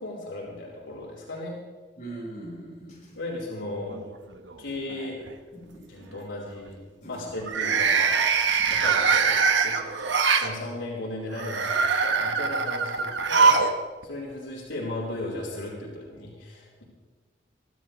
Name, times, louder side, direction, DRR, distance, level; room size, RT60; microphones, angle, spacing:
voice 1, 0.0-1.6 3.1-4.0 4.6-5.2 5.9-8.4 8.7-13.7 14.0-16.8, left 1 dB, 90° left, -4 dB, 4.8 m, -36 dB
voice 2, 2.0-3.2 5.5-5.9 7.0-7.3, right 2 dB, 40° left, -5 dB, 6.3 m, -41 dB
sound 1, 3.9-4.5 4.9-5.3 7.4-10.5 11.3-13.7 14.0-14.1 15.2-15.3, right 5 dB, 80° right, 1.4 m, -23 dB
24.0 x 14.0 x 3.4 m, 1.4 s
head